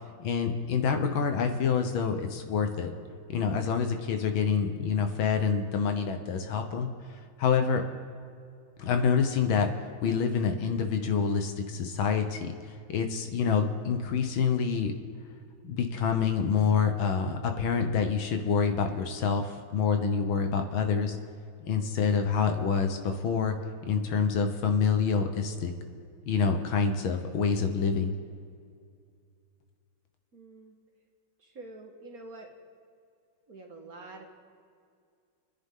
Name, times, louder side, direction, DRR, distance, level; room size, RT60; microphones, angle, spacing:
voice 1, 0.2-2.9 3.3-6.9 7.4-7.8 8.8-12.5 12.9-14.9 15.6-21.2 21.7-23.6 23.8-25.7 26.3-28.1, left 6 dB, 70° left, 6 dB, 1.7 m, -27 dB
voice 2, 30.3-30.8 31.4-32.5 33.5-34.3, right 2 dB, 45° right, 1 dB, 1.8 m, -46 dB
29.5 x 10.5 x 3.7 m, 2.3 s
omnidirectional pair, 2.4 m